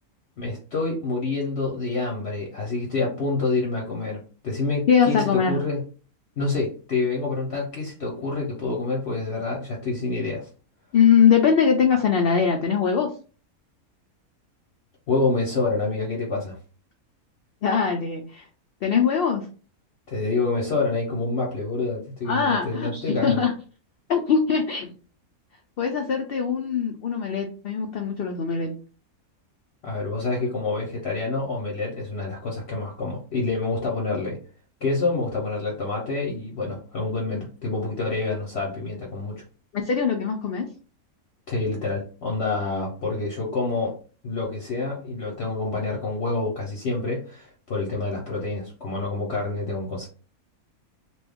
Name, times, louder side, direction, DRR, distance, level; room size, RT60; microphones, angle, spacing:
voice 1, 0.4-5.8 6.4-10.5 15.1-16.6 20.1-23.5 29.8-34.4 34.8-39.4 41.5-44.0 44.2-50.1, left 3 dB, 55° left, -2 dB, 0.9 m, -27 dB
voice 2, 4.9-5.6 10.9-13.1 17.6-18.5 18.8-19.5 22.3-23.5 24.1-24.9 25.8-28.7 39.7-40.7, left 6 dB, 75° left, 3 dB, 0.5 m, -22 dB
3.0 x 2.3 x 3.4 m, 0.38 s
omnidirectional pair, 1.5 m